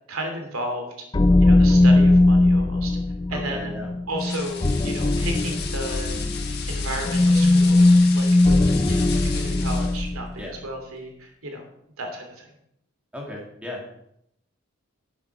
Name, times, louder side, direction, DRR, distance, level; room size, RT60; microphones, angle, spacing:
voice 1, 0.1-0.9 1.4-3.0 3.3-3.7 4.1-6.1 6.7-11.6 12.0-12.5, right 1 dB, 85° right, 3 dB, 2.9 m, -34 dB
sound 1, 1.1-10.3, left 2 dB, 20° left, 0.3 m, -19 dB
voice 2, 3.3-3.9 10.4-10.6 13.1-13.8, left 1 dB, 5° right, -2 dB, 2.4 m, -35 dB
sound 2, 4.2-10.1, left 6 dB, 50° left, 1.6 m, -35 dB
11.5 x 8.5 x 4.7 m, 0.75 s
head